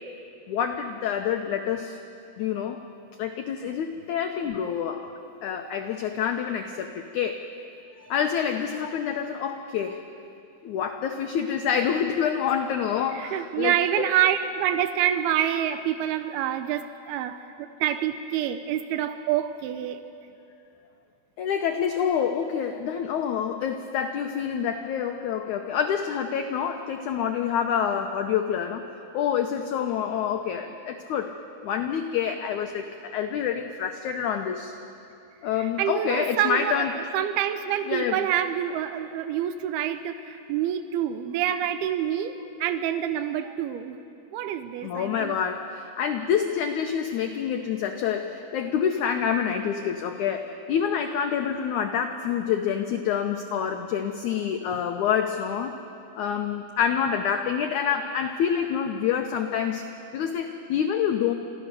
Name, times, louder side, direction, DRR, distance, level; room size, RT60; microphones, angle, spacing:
voice 1, 0.5-2.0 2.4-2.8 3.2-5.1 5.4-7.4 7.9-10.0 10.6-14.1 21.4-28.8 29.1-31.3 31.6-34.7 35.4-36.9 37.9-38.2 44.8-55.8 56.2-59.8 60.1-61.3, left 8 dB, 90° left, 5 dB, 1.7 m, -27 dB
voice 2, 13.1-20.0 35.6-44.0 44.3-45.4, right 10 dB, 85° right, 10 dB, 2.6 m, -27 dB
28.5 x 14.0 x 6.8 m, 2.7 s
omnidirectional pair, 4.4 m